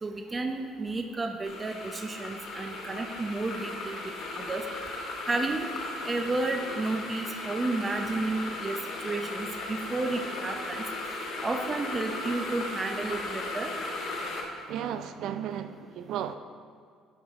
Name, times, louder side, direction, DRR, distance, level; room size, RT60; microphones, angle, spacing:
voice 1, 0.0-4.6 5.3-5.7 6.0-10.8 11.4-13.7, right 3 dB, 25° right, 5 dB, 0.7 m, -32 dB
sound 1, 1.4-14.4, left 2 dB, 65° left, 1.5 m, -36 dB
voice 2, 14.7-16.4, right 9 dB, 70° right, 10 dB, 0.5 m, -34 dB
12.0 x 5.0 x 3.7 m, 2.2 s
supercardioid pair, 90°, 0 cm